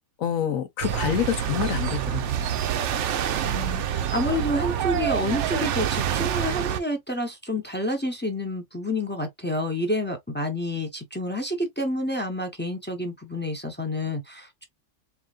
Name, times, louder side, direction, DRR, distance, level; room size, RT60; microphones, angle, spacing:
voice 1, 0.2-2.5, left 9 dB, 80° left, 1.2 m, -27 dB
sound 1, 0.8-6.8, right 9 dB, 65° right, 0.9 m, -27 dB
voice 2, 3.4-14.6, left 1 dB, 10° left, 0.6 m, -29 dB
3.9 x 3.4 x 2.4 m
omnidirectional pair, 1.4 m